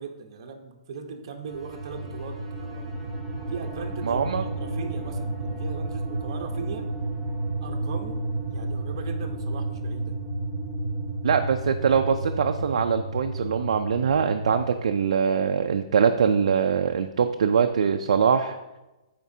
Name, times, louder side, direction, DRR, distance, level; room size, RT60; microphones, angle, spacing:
voice 1, 0.0-2.9 3.5-6.9 7.6-10.1, right 5 dB, 45° right, 4 dB, 0.9 m, -39 dB
sound 1, 1.4-14.7, right 2 dB, ahead, 0.9 m, -31 dB
voice 2, 4.0-4.5 11.2-18.6, right 6 dB, 75° right, 5 dB, 0.4 m, -23 dB
12.0 x 4.4 x 2.7 m, 1.0 s
hypercardioid pair, 175°, 3 cm